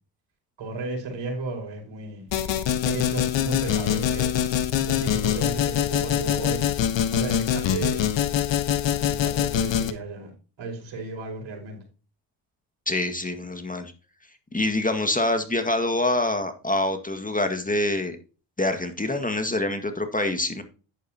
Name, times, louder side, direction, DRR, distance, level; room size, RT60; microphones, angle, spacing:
voice 1, 0.6-2.3 2.8-4.3 4.9-6.8 7.1-8.3 8.9-10.3 10.6-11.8, right 3 dB, 65° right, 5.1 m, -34 dB
sound 1, 2.3-9.9, left 10 dB, 65° left, 1.4 m, -24 dB
voice 2, 12.9-13.9 14.5-18.2 18.6-20.6, left 2 dB, 15° left, 1.9 m, -25 dB
10.5 x 9.2 x 2.9 m
supercardioid pair, 60°, 47 cm